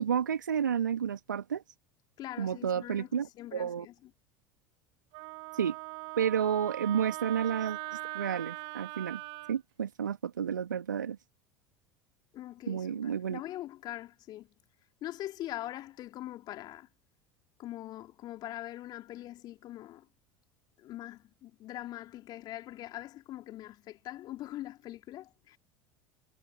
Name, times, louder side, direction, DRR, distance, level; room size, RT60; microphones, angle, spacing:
voice 1, 0.0-1.6 2.4-3.9 5.6-5.8 6.2-7.8 8.1-9.2 9.5-11.2 12.7-13.4, right 8 dB, 75° right, 3.0 m, -31 dB
voice 2, 2.2-4.1 12.3-14.5 15.0-16.9 17.6-20.1 20.8-25.6, left 14 dB, 45° left, 2.9 m, -43 dB
Wind instrument woodwind instrument, 5.1-9.5, right 29 dB, 55° right, 1.5 m, -40 dB
figure-of-eight pair, 70°, 10 cm